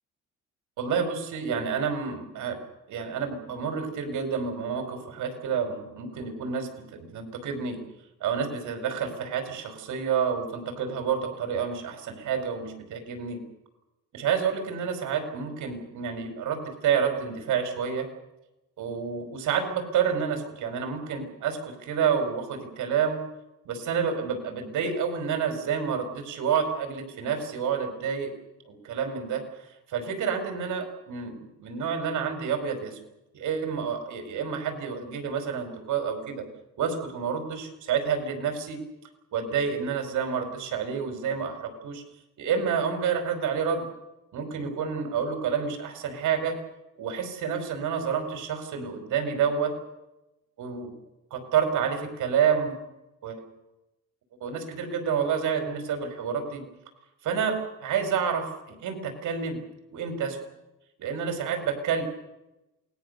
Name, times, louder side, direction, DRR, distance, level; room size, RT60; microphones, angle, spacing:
voice 1, 0.8-2.6 2.9-7.8 8.2-13.4 14.1-18.1 18.8-23.2 23.6-28.3 28.7-29.4 29.9-33.0 33.3-36.4 36.8-38.8 39.3-42.0 42.4-43.8 44.3-46.5 47.0-49.7 50.6-50.9 51.3-52.7 53.2-53.4 54.4-56.6 57.2-59.6 59.9-60.4 61.0-62.0, right 7 dB, 80° right, 7 dB, 5.0 m, -29 dB
27.5 x 20.0 x 6.8 m, 0.96 s
cardioid pair, 90°, 30 cm